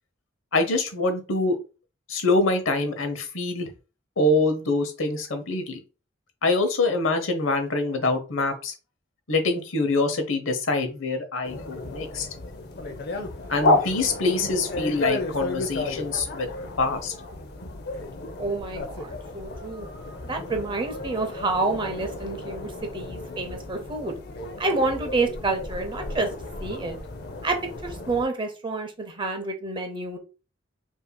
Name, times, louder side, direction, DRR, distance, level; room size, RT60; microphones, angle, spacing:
voice 1, 0.5-1.6 2.1-3.7 4.2-5.8 6.4-8.7 9.3-12.3 13.5-16.5 16.8-17.1, left 2 dB, 85° left, 8 dB, 0.9 m, -25 dB
sound 1, 11.4-28.3, left 2 dB, 55° left, 0.6 m, -32 dB
voice 2, 18.4-19.9 20.2-24.1 24.6-26.3 26.6-27.0 27.4-30.2, right 3 dB, 25° right, 4 dB, 0.7 m, -28 dB
5.6 x 2.7 x 2.2 m, 0.33 s
head